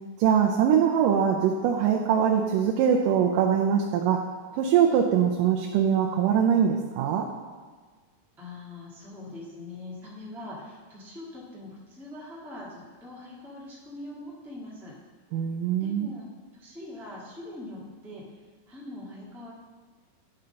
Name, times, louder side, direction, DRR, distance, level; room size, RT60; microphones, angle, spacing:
voice 1, 0.2-4.2 4.5-7.3 15.3-16.1, right 8 dB, 85° right, 1 dB, 2.2 m, -23 dB
voice 2, 8.4-15.0 15.8-16.2 16.5-18.2 18.7-19.5, left 2 dB, ahead, -6 dB, 0.7 m, -42 dB
10.5 x 4.0 x 5.5 m, 1.4 s
omnidirectional pair, 3.8 m